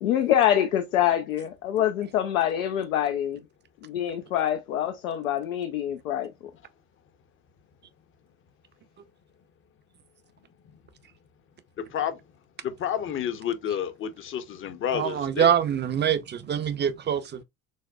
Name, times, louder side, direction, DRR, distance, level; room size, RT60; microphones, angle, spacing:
voice 1, 0.0-3.4 3.8-6.3, left 11 dB, 85° left, 0.6 m, -25 dB
voice 2, 12.8-15.5, left 9 dB, 30° left, 0.6 m, -30 dB
voice 3, 14.9-17.4, right 9 dB, 25° right, 0.5 m, -25 dB
6.3 x 2.1 x 2.2 m
hypercardioid pair, 70°, 41 cm